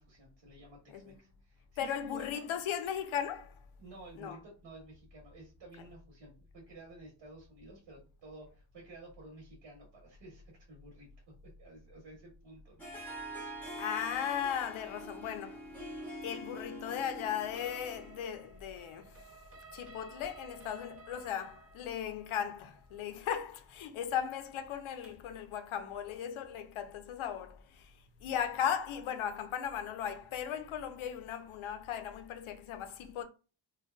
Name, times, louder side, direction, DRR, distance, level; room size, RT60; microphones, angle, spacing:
voice 1, 0.0-2.5 3.8-11.1 11.4-12.9, right 2 dB, 70° right, 1.0 m, -53 dB
voice 2, 1.8-3.6 4.2-4.4 13.8-15.7 16.2-19.4 19.7-27.9 28.2-33.2, left 9 dB, 75° left, 0.5 m, -37 dB
Harp, 12.8-18.3, right 1 dB, 5° left, 0.6 m, -45 dB
sound 1, 17.5-25.4, right 4 dB, 30° right, 0.4 m, -55 dB
2.5 x 2.2 x 2.2 m
wide cardioid pair, 105°, 49 cm